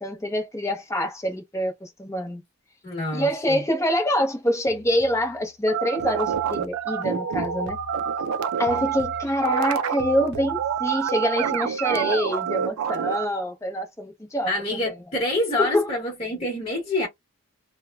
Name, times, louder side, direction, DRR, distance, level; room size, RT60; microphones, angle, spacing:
voice 1, 0.0-2.4 3.1-7.8 8.6-14.5 15.6-15.9, equal, 15° left, 0.6 m, -25 dB
voice 2, 2.8-3.6 14.5-17.1, left 2 dB, 30° left, 1.0 m, -27 dB
sound 1, 4.7-5.4 6.0-8.4 8.7-11.0, left 2 dB, 50° right, 0.7 m, -44 dB
sound 2, 5.7-13.3, right 8 dB, 90° right, 0.4 m, -27 dB
3.0 x 2.1 x 2.2 m
head